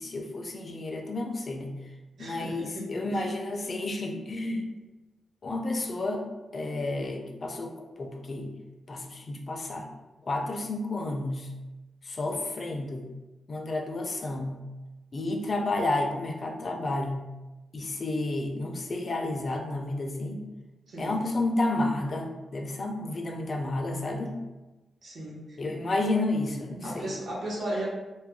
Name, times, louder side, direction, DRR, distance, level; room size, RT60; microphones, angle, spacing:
voice 1, 0.0-1.7 2.2-4.7 5.4-6.2 6.5-8.5 8.9-9.9 10.3-11.5 12.0-13.1 13.5-14.6 15.1-17.2 17.7-20.4 21.0-24.3 25.6-27.1, left 2 dB, 35° left, 2 dB, 0.3 m, -31 dB
voice 2, 2.2-3.3 20.9-21.2 25.0-25.6 26.8-27.9, right 1 dB, 70° right, -5 dB, 0.9 m, -36 dB
2.3 x 2.1 x 3.4 m, 1.1 s
wide cardioid pair, 155°, 0 cm